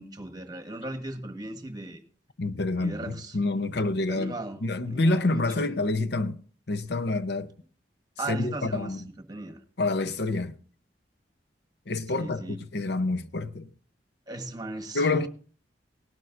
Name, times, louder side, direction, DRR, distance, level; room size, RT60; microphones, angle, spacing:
voice 1, 0.0-2.0 2.8-3.3 4.1-5.7 8.2-9.0 9.3-9.6 12.1-12.6 14.3-15.3, right 2 dB, 20° right, 1.3 m, -37 dB
voice 2, 2.4-6.4 6.7-7.5 8.3-9.0 9.8-10.6 11.9-13.7 14.9-15.3, left 2 dB, 65° left, 0.7 m, -27 dB
18.5 x 12.0 x 2.5 m
head